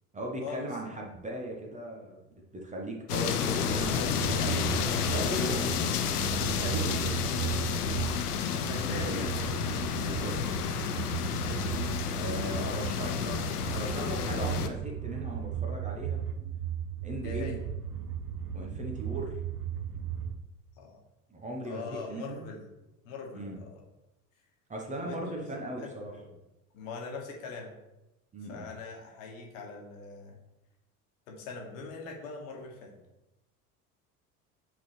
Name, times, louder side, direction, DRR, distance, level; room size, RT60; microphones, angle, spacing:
voice 1, 0.1-2.2 2.5-5.9 6.6-7.8 8.6-9.2 10.0-10.4 12.2-13.4 13.7-16.2 17.0-17.6 18.5-19.4 21.3-22.5 23.3-23.6 24.7-26.1 28.3-28.6, right 1 dB, 15° right, 0 dB, 1.0 m, -38 dB
sound 1, 3.1-14.7, left 7 dB, 75° left, 0.7 m, -31 dB
sound 2, 3.6-20.3, right 9 dB, 50° right, 0.7 m, -36 dB
voice 2, 6.9-7.4 8.6-9.4 11.4-11.8 17.2-17.6 20.8-21.0 21.6-22.7 23.0-23.8 25.0-26.3 26.7-27.7 28.5-30.4 31.3-32.9, left 4 dB, 60° left, 0 dB, 1.5 m, -42 dB
7.7 x 3.9 x 3.2 m, 0.95 s
figure-of-eight pair, 70°, 46 cm